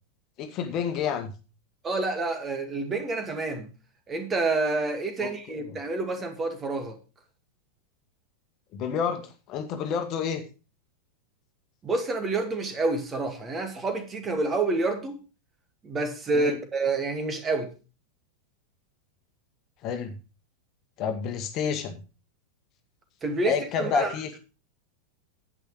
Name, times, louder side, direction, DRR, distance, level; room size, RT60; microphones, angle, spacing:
voice 1, 0.4-1.3 5.2-5.3 5.6-5.8 8.7-9.2 9.5-10.4 16.3-16.6 19.8-20.2 21.0-22.0 23.4-24.4, left 7 dB, 35° left, 1.7 m, -29 dB
voice 2, 1.8-3.7 4.1-7.0 11.8-15.2 15.8-17.7 23.2-24.2, right 3 dB, 20° right, 2.3 m, -28 dB
10.5 x 8.7 x 4.8 m
figure-of-eight pair, 90°, 0 cm